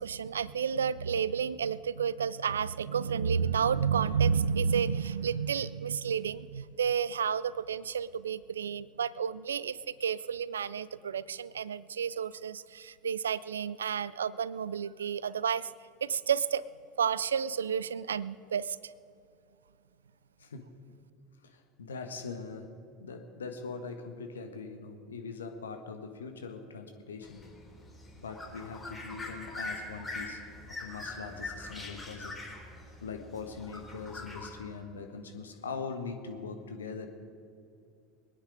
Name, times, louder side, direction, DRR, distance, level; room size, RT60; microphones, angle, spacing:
voice 1, 0.0-15.7 16.0-16.6 17.0-18.8, right 7 dB, 80° right, 20 dB, 0.3 m, -31 dB
voice 2, 20.4-20.7 21.4-22.7 23.0-27.4 28.1-30.4 30.7-32.4 33.0-37.1, left 4 dB, 80° left, 6 dB, 1.3 m, -41 dB
sound 1, 27.2-34.5, left 2 dB, 20° left, 4.1 m, -43 dB
22.5 x 10.0 x 4.9 m, 2.5 s
figure-of-eight pair, 70°, 0 cm